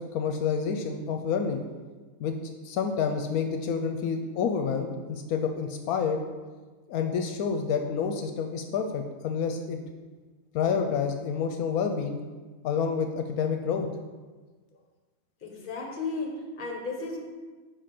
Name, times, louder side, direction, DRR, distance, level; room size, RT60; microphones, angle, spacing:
voice 1, 0.0-1.6 2.2-6.2 6.9-9.8 10.5-12.2 12.6-13.9, left 6 dB, 80° left, 5 dB, 1.0 m, -28 dB
voice 2, 15.4-17.2, left 3 dB, 40° left, 1 dB, 1.1 m, -34 dB
5.0 x 5.0 x 5.8 m, 1.4 s
omnidirectional pair, 1.5 m